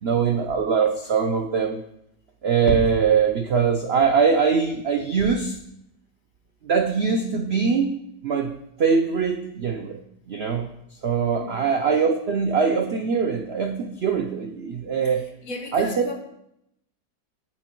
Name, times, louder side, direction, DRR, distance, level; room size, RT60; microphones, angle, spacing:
voice 1, 0.0-1.8 2.4-5.6 6.6-7.9 8.2-10.0 10.3-10.7 11.0-15.3 15.7-15.9, right 6 dB, 80° right, 5 dB, 0.5 m, -22 dB
voice 2, 11.3-11.8 15.0-16.2, left 3 dB, 55° left, 2 dB, 1.5 m, -36 dB
8.9 x 6.0 x 4.4 m, 0.78 s
omnidirectional pair, 1.9 m